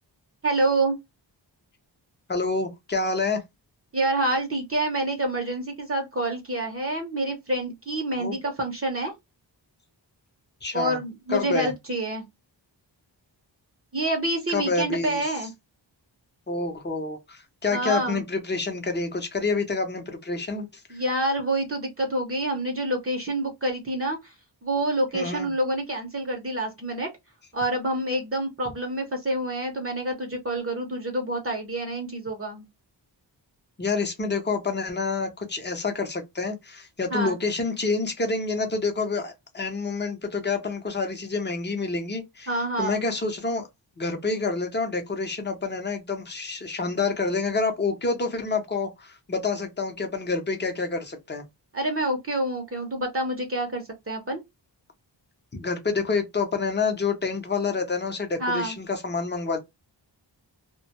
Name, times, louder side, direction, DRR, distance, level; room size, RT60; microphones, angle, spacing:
voice 1, 0.4-1.0 3.9-9.1 10.7-12.2 13.9-15.5 17.7-18.2 20.9-24.3 24.6-27.1 27.5-32.7 37.1-37.4 42.5-43.0 51.7-54.4 58.4-58.7, right 1 dB, 30° right, 0.7 m, -27 dB
voice 2, 2.3-3.4 8.2-8.4 10.6-11.0 11.3-11.7 14.5-15.3 16.5-20.7 25.1-25.5 33.8-42.5 42.8-43.7 44.0-51.4 55.5-59.6, left 4 dB, 25° left, 0.6 m, -28 dB
2.1 x 2.1 x 2.8 m
wide cardioid pair, 110°, 45 cm